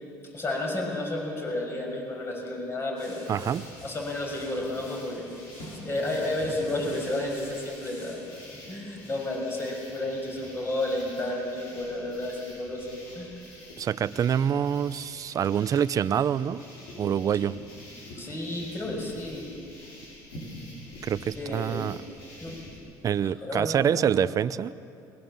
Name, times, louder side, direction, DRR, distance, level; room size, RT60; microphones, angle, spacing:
voice 1, 0.3-3.3 3.8-5.3 5.8-8.2 8.5-12.9 13.1-13.4 18.2-19.5 21.4-21.9 22.4-22.6 23.2-24.1, left 1 dB, 30° left, 0 dB, 6.3 m, -32 dB
sound 1, 3.0-22.8, left 1 dB, 90° left, 6.8 m, -46 dB
voice 2, 3.3-3.6 13.8-16.6 17.0-17.6 21.0-22.0 23.0-24.7, right 8 dB, 45° right, 15 dB, 0.6 m, -26 dB
22.0 x 20.5 x 7.5 m, 2.7 s
supercardioid pair, 90°, 8 cm